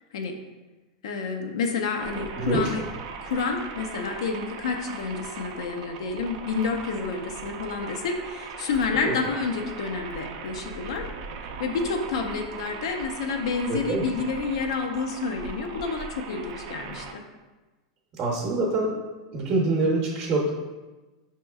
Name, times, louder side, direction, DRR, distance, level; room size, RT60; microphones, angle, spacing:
voice 1, 1.0-2.8 3.2-11.1 11.4-17.2, left 4 dB, 80° left, 4 dB, 0.5 m, -29 dB
sound 1, 2.0-17.1, right 5 dB, 65° right, 0.4 m, -39 dB
voice 2, 2.4-2.7 9.0-9.2 13.7-14.1 18.2-19.0 19.3-20.5, right 2 dB, 35° right, -3 dB, 0.7 m, -25 dB
5.3 x 2.9 x 2.3 m, 1.2 s
supercardioid pair, 130°, 3 cm